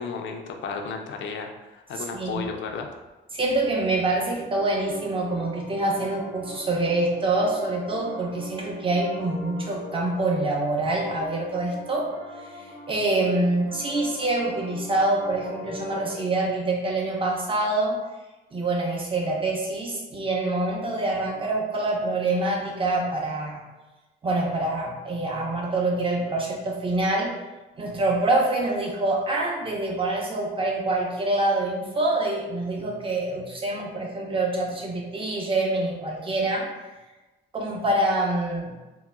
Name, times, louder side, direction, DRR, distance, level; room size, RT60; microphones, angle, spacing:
voice 1, 0.0-2.9, left 5 dB, 70° left, 4 dB, 0.5 m, -33 dB
voice 2, 2.0-2.4 3.3-12.1 12.4-18.0 18.5-23.6 24.2-27.4 27.8-36.7 37.5-38.8, right 2 dB, 25° right, -2 dB, 0.7 m, -26 dB
Piano, 3.7-16.2, left 1 dB, 75° right, 1.2 m, -42 dB
3.7 x 2.0 x 2.2 m, 1.1 s
cardioid pair, 90°, 20 cm